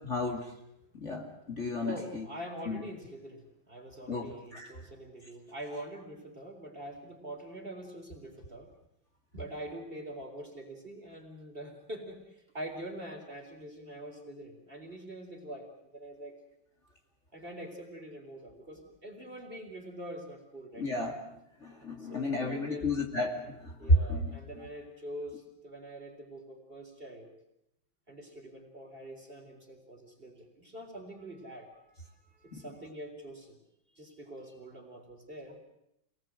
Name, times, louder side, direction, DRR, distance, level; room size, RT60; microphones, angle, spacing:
voice 1, 0.0-0.5 0.9-2.3 2.7-2.8 4.1-4.3 4.5-4.7 20.8-21.1 21.6-24.3, left 1 dB, 35° left, 0 dB, 2.9 m, -31 dB
voice 2, 1.8-8.7 9.3-16.3 17.3-20.9 22.0-23.0 23.8-27.3 28.1-33.6 34.0-35.6, right 1 dB, 25° right, 2 dB, 4.1 m, -44 dB
26.5 x 19.5 x 7.7 m, 0.79 s
omnidirectional pair, 2.2 m